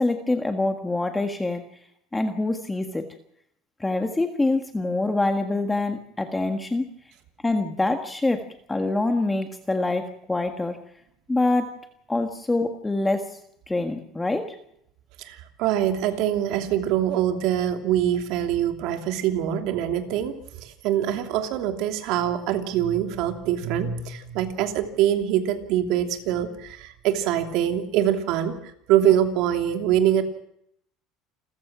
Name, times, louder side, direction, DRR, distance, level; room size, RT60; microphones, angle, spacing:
voice 1, 0.0-1.7 2.1-3.1 3.8-6.9 7.4-8.4 8.7-10.8 11.3-11.7 12.1-13.3 13.7-14.6, left 2 dB, 10° left, 6 dB, 1.6 m, -25 dB
voice 2, 15.2-20.3 20.6-28.5 28.9-30.2, right 11 dB, 65° right, 6 dB, 2.9 m, -24 dB
29.0 x 14.5 x 6.1 m, 0.73 s
cardioid pair, 140°, 0 cm